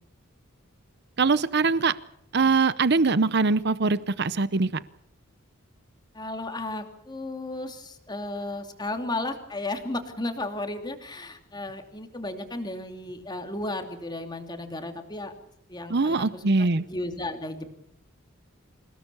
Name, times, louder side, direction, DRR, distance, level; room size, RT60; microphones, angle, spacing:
voice 1, 1.2-1.9 2.3-4.8 15.9-16.8, right 4 dB, 50° right, 16 dB, 0.8 m, -22 dB
voice 2, 6.1-15.3 15.7-17.8, left 2 dB, 20° left, 5 dB, 2.8 m, -34 dB
27.5 x 17.5 x 7.0 m, 0.77 s
head